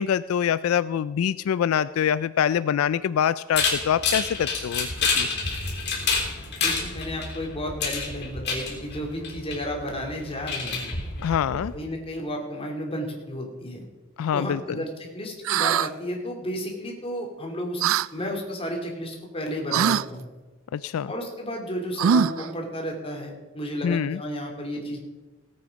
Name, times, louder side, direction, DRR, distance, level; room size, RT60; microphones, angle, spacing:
voice 1, 0.0-5.3 11.2-11.7 14.2-14.8 20.7-21.1 23.8-24.2, left 8 dB, 80° left, 16 dB, 0.3 m, -25 dB
sound 1, 3.5-11.8, left 4 dB, 55° left, 3.5 m, -29 dB
voice 2, 6.6-10.9 11.7-13.8 14.3-17.8 18.1-20.3 21.1-25.0, equal, 30° left, 1 dB, 3.0 m, -32 dB
sound 2, 15.4-15.9 17.8-18.1 19.7-20.1 22.0-22.5, right 8 dB, 70° right, 0.3 m, -22 dB
17.5 x 8.7 x 5.3 m, 1.2 s
head